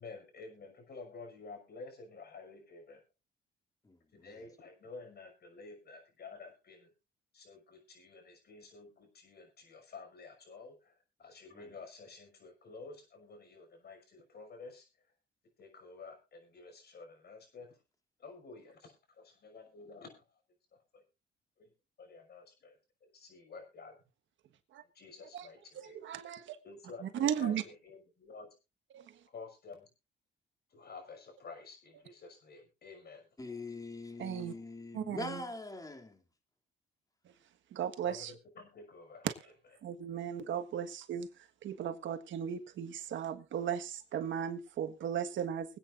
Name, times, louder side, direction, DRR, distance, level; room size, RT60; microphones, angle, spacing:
voice 1, 0.0-3.0 4.1-6.9 7.3-10.9 11.2-14.9 15.6-17.8 18.2-20.2 20.9-21.0 21.6-21.7 22.0-24.0 24.9-26.0 26.6-28.6 29.3-29.9 30.7-33.2 38.0-39.3, left 4 dB, 55° left, 5.8 m, -51 dB
voice 2, 3.8-4.4 11.5-11.7 33.4-36.2, left 2 dB, 15° left, 2.6 m, -43 dB
voice 3, 25.8-26.6 27.1-27.6 28.9-29.0 34.2-34.5 34.9-35.4 37.7-38.3 39.2-39.3 39.8-41.3 41.6-45.8, right 9 dB, 70° right, 1.5 m, -36 dB
24.5 x 9.0 x 2.5 m
cardioid pair, 90°, 20 cm